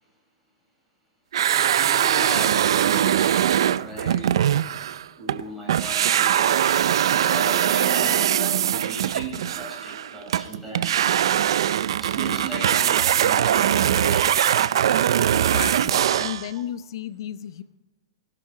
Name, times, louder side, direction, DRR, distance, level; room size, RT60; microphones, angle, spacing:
sound 1, 1.3-5.4 5.7-16.5, right 10 dB, 75° right, 0.4 m, -21 dB
voice 1, 1.5-4.4 5.2-6.6 7.0-11.1 12.0-14.4, right 2 dB, ahead, -4 dB, 4.4 m, -37 dB
voice 2, 15.3-17.6, left 11 dB, 60° left, 15 dB, 0.6 m, -34 dB
20.0 x 12.0 x 4.8 m, 1.0 s
supercardioid pair, 180°, 3 cm